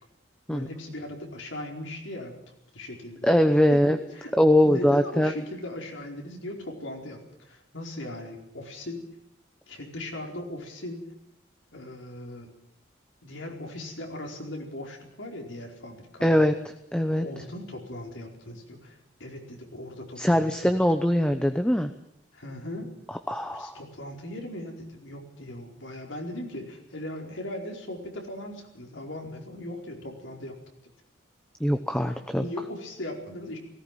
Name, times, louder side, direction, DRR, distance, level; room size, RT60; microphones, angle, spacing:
voice 1, 0.5-2.3 2.7-3.4 3.7-4.3 4.6-9.0 9.7-11.0 11.7-12.5 13.2-16.5 17.2-20.7 22.3-22.9 23.5-30.6 32.4-33.6, left 1 dB, 80° left, 1 dB, 4.7 m, -38 dB
voice 2, 3.2-4.0 4.4-5.3 16.2-17.2 20.2-21.9 23.1-23.8 31.6-32.4, equal, 5° left, 7 dB, 0.8 m, -22 dB
18.5 x 17.5 x 9.1 m, 0.76 s
head